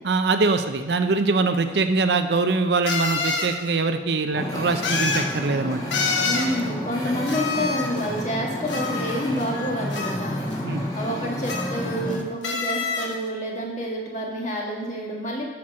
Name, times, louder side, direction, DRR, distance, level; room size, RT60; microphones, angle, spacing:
voice 1, 0.0-5.8 10.6-10.8, right 3 dB, 65° right, 8 dB, 0.6 m, -23 dB
sound 1, 1.5-1.6 2.9-3.5 4.8-5.3 5.9-6.5 7.3-8.1 8.7-9.5 9.9-10.5 11.4-12.1 12.4-13.1, left 4 dB, 90° left, 1.1 m, -27 dB
Wind / Ocean, 4.3-12.2, left 1 dB, 20° left, 1.5 m, -30 dB
voice 2, 6.2-10.4 10.9-15.4, equal, 40° left, -2 dB, 1.8 m, -28 dB
8.5 x 5.9 x 6.4 m, 1.2 s
head